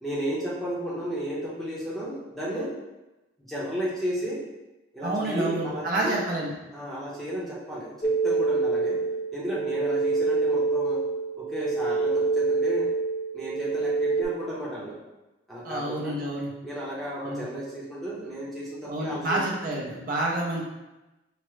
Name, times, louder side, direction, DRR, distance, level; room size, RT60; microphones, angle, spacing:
voice 1, 0.0-2.7 3.4-4.4 4.9-6.2 6.7-9.0 9.3-11.1 11.4-13.0 13.3-15.0 15.5-16.2 16.6-19.5, right 1 dB, ahead, -7 dB, 0.8 m, -33 dB
voice 2, 5.0-6.5 15.6-16.5 17.2-17.4 18.8-20.7, right 1 dB, 45° right, -4 dB, 0.6 m, -29 dB
sound 1, 8.0-14.3, right 3 dB, 30° left, 0.3 m, -26 dB
4.9 x 2.1 x 3.1 m, 1.0 s
head